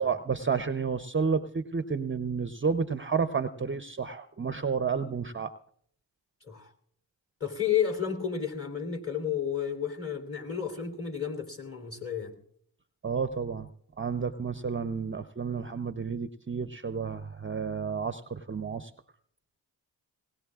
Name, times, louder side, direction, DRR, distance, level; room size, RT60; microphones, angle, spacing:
voice 1, 0.0-5.5 13.0-13.7 14.0-18.9, right 5 dB, 25° right, 11 dB, 0.7 m, -31 dB
voice 2, 7.4-12.3, left 8 dB, 30° left, 4 dB, 3.0 m, -31 dB
20.0 x 18.0 x 2.4 m, 0.62 s
supercardioid pair, 40°, 45 cm